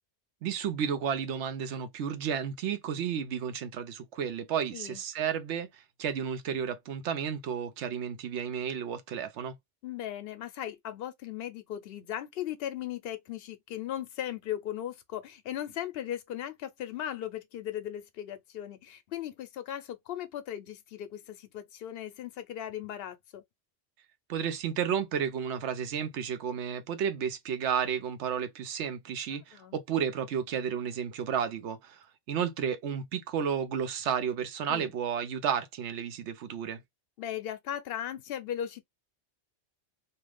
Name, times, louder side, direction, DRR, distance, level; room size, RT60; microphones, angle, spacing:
voice 1, 0.4-9.6 24.3-36.8, right 8 dB, 80° right, 0.9 m, -32 dB
voice 2, 9.8-23.4 29.5-29.8 34.7-34.9 37.2-38.8, left 11 dB, 65° left, 0.8 m, -37 dB
2.5 x 2.4 x 3.3 m
omnidirectional pair, 1.2 m